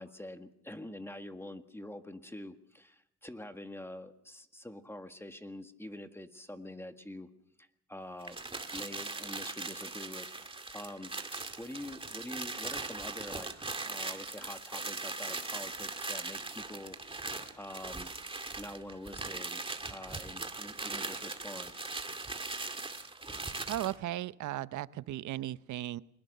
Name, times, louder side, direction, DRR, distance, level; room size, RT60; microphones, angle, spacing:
voice 1, 0.0-7.3 7.6-8.4 8.7-11.1 11.6-17.3 17.6-18.1 18.6-19.6 19.9-21.8, left 1 dB, 10° left, 7 dB, 1.7 m, -46 dB
sound 1, 8.2-24.0, right 3 dB, 15° right, 2.2 m, -40 dB
voice 2, 23.7-26.0, right 14 dB, 75° right, 16 dB, 0.8 m, -36 dB
23.5 x 19.5 x 6.7 m, 0.77 s
cardioid pair, 90°, 30 cm